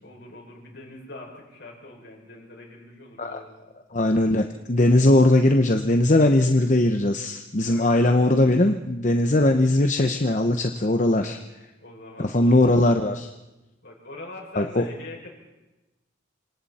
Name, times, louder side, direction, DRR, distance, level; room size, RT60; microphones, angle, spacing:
voice 1, 0.0-3.7 7.6-8.3 11.8-12.7 13.8-15.3, left 2 dB, 65° left, 0 dB, 6.5 m, -43 dB
voice 2, 3.9-11.4 12.2-13.3 14.6-14.8, left 1 dB, 40° left, 5 dB, 0.9 m, -20 dB
27.0 x 26.5 x 4.3 m, 1.0 s
head